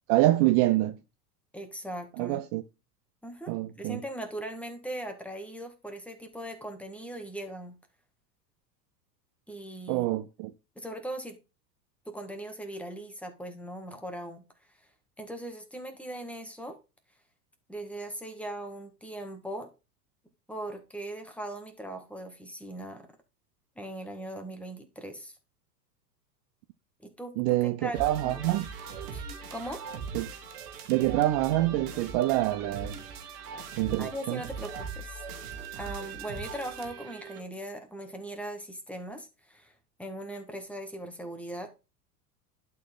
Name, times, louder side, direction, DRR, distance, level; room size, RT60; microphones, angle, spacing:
voice 1, 0.1-1.0 2.2-2.6 3.5-4.0 9.9-10.5 27.4-28.7 30.1-30.3 30.9-33.0 33.8-34.4, right 16 dB, 45° right, 0.6 m, -26 dB
voice 2, 1.5-2.4 3.2-7.8 9.5-10.1 10.8-11.4 12.1-14.8 15.2-16.8 17.7-19.7 20.5-23.1 23.8-25.4 27.0-28.4 29.1-29.8 34.0-35.2 35.8-41.7, right 1 dB, 5° left, 1.7 m, -40 dB
sound 1, 27.9-37.4, right 5 dB, 65° right, 1.9 m, -40 dB
11.5 x 4.5 x 3.8 m
hypercardioid pair, 90°, 50 cm